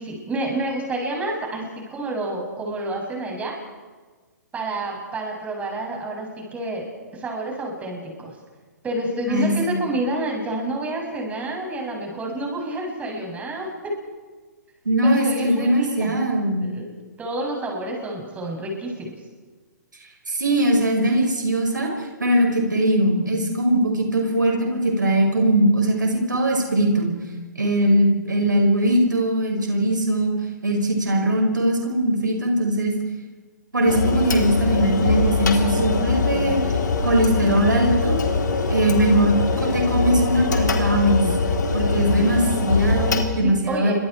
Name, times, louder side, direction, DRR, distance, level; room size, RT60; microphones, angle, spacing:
voice 1, 0.0-3.5 4.5-8.4 8.8-13.9 15.0-16.2 16.6-16.9 17.2-19.1 43.4-43.9, right 1 dB, 15° right, 0 dB, 7.6 m, -29 dB
voice 2, 9.3-9.8 14.8-16.6 20.3-27.1 27.6-30.3 30.6-32.9 33.7-36.6 37.0-38.2 38.7-41.2 41.7-43.9, right 1 dB, 85° right, 2 dB, 5.9 m, -20 dB
sound 1, 33.9-43.2, left 4 dB, 75° left, 3.9 m, -22 dB
29.0 x 25.0 x 4.7 m, 1.4 s
figure-of-eight pair, 125°, 10 cm